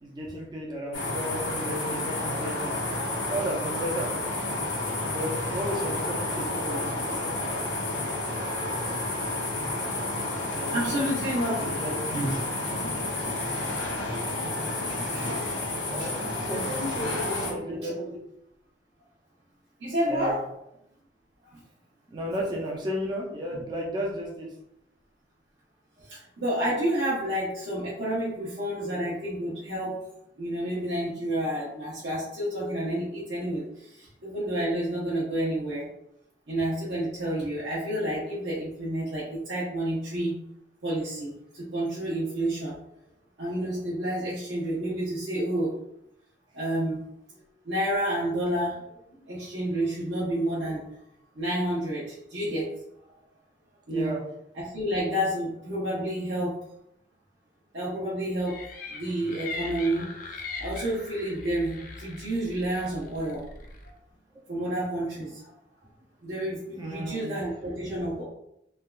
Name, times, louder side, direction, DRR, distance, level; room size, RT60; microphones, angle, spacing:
voice 1, 0.0-2.7 3.3-4.1 5.1-6.8 10.6-11.0 11.6-12.1 14.4-14.5 15.9-16.6 17.0-18.2 20.1-20.3 22.1-24.5 53.9-54.2 66.8-67.3 67.8-67.9, equal, 25° right, -3 dB, 0.4 m, -33 dB
sound 1, 0.9-17.5, left 2 dB, 85° left, 0.8 m, -30 dB
voice 2, 10.7-11.8 12.1-12.4 12.8-13.0 14.9-15.4 16.0-16.1 16.4-18.1 19.8-20.4 21.4-21.6 26.0-30.0 30.4-35.9 36.5-40.4 40.8-42.7 43.4-45.8 46.5-48.9 49.3-50.9 51.4-52.7 53.9-54.1 54.5-56.6 57.7-58.6 58.9-60.1 60.6-63.5 64.5-65.5 66.2-68.2, right 1 dB, 70° right, -9 dB, 0.8 m, -30 dB
sound 2, 58.5-63.9, left 3 dB, 50° left, 0.4 m, -40 dB
3.3 x 2.3 x 2.3 m, 0.80 s
head